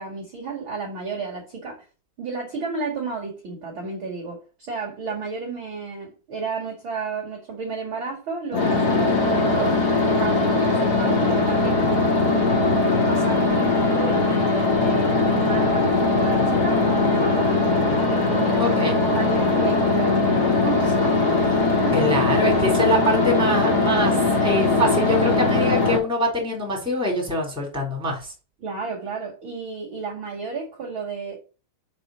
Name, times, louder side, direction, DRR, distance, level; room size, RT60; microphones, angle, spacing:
voice 1, 0.0-1.8 2.2-9.8 10.0-11.8 12.2-22.0 28.6-31.4, right 4 dB, 50° right, 1.5 m, -32 dB
sound 1, 8.5-26.0, left 3 dB, 50° left, 1.1 m, -20 dB
voice 2, 18.6-19.0 21.9-28.3, equal, ahead, 2.7 m, -24 dB
6.5 x 4.8 x 6.5 m
omnidirectional pair, 5.5 m